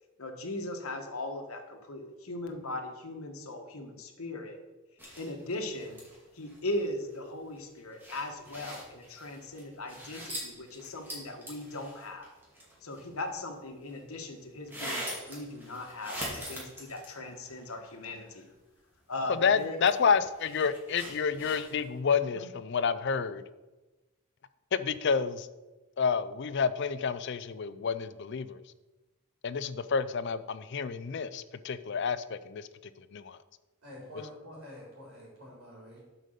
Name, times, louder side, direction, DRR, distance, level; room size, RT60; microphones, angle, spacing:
voice 1, 0.2-4.6 5.2-6.0 6.3-12.3 12.8-18.5 19.1-19.8 22.3-22.5, left 2 dB, 80° left, 4 dB, 1.3 m, -38 dB
sound 1, 5.0-6.9 7.1-7.2 7.5-13.3 13.9-14.0 14.7-17.5 17.9-18.0 19.5-22.0, equal, 10° right, 2.2 m, -43 dB
voice 2, 19.4-23.4 24.7-25.5 26.0-28.6 29.4-32.7 33.1-33.4, left 6 dB, 55° left, 13 dB, 0.4 m, -29 dB
voice 3, 33.8-36.0, left 1 dB, 70° right, -5 dB, 3.4 m, -47 dB
7.8 x 5.2 x 6.6 m, 1.1 s
head